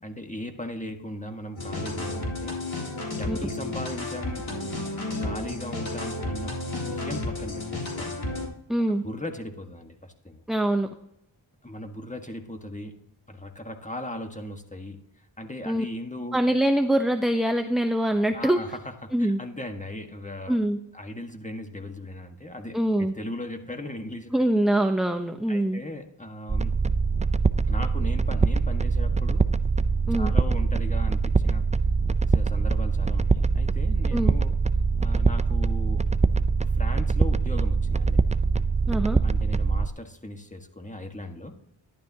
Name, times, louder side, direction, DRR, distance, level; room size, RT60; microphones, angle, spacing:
voice 1, 0.0-2.6 3.1-4.5 5.2-6.5 6.9-8.1 9.0-10.4 11.6-13.0 13.3-16.4 18.3-20.6 20.9-24.3 25.5-26.7 27.7-29.5 30.2-31.6 32.3-34.5 35.0-36.0 36.6-38.2 39.2-41.6, left 1 dB, 15° left, 5 dB, 1.5 m, -38 dB
sound 1, 1.6-8.5, left 2 dB, 70° left, 3.6 m, -32 dB
voice 2, 8.7-9.0 10.5-10.9 15.7-15.8 16.3-18.6 19.1-19.4 20.5-20.8 22.7-23.1 24.3-25.8 30.1-30.3 34.1-34.3 38.9-39.2, right 1 dB, ahead, 6 dB, 0.8 m, -24 dB
sound 2, 26.5-39.9, right 4 dB, 15° right, 0.4 m, -23 dB
12.0 x 11.0 x 2.8 m, 0.80 s
cardioid pair, 40°, 49 cm